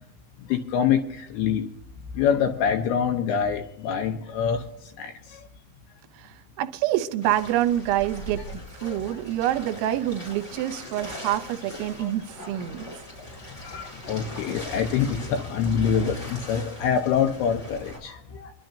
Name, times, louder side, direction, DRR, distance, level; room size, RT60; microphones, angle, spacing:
voice 1, 0.5-1.7 2.1-4.6 5.0-5.4 8.8-9.2 11.3-11.4 12.0-12.1 13.6-18.5, left 7 dB, 80° left, 4 dB, 2.4 m, -25 dB
voice 2, 6.6-8.4 8.8-12.9, right 13 dB, 80° right, 9 dB, 3.1 m, -26 dB
sound 1, 7.2-18.0, equal, 15° left, 4.5 m, -41 dB
25.5 x 11.5 x 2.7 m, 0.77 s
omnidirectional pair, 5.5 m